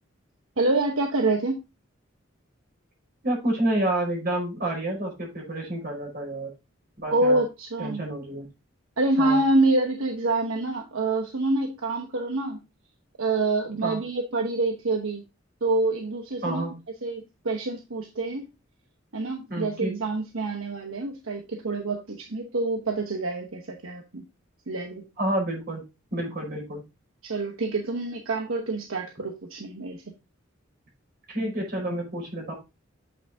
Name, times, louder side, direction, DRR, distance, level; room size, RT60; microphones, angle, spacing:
voice 1, 0.6-1.6 7.1-8.0 9.0-12.6 13.2-15.2 15.6-16.6 17.0-18.4 19.1-24.2 24.7-25.0 27.2-30.1, right 2 dB, 85° right, 3 dB, 1.1 m, -26 dB
voice 2, 3.2-6.5 7.0-7.4 7.8-8.4 9.2-9.4 13.8-14.0 16.4-16.7 19.5-19.9 25.2-25.8 26.1-26.8 31.3-32.5, right 1 dB, 50° right, 0 dB, 4.9 m, -29 dB
7.8 x 6.1 x 2.7 m, 0.25 s
head